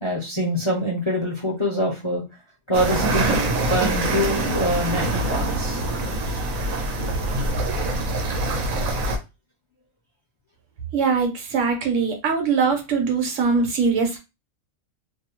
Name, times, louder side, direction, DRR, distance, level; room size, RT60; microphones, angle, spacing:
voice 1, 0.0-2.2 2.7-3.4 3.7-5.8, equal, 45° left, -2 dB, 0.4 m, -24 dB
sound 1, 2.7-9.2, right 2 dB, 90° right, 1.1 m, -24 dB
voice 2, 10.9-14.2, right 5 dB, 70° right, 4 dB, 1.1 m, -22 dB
2.6 x 2.0 x 2.9 m, 0.25 s
omnidirectional pair, 1.4 m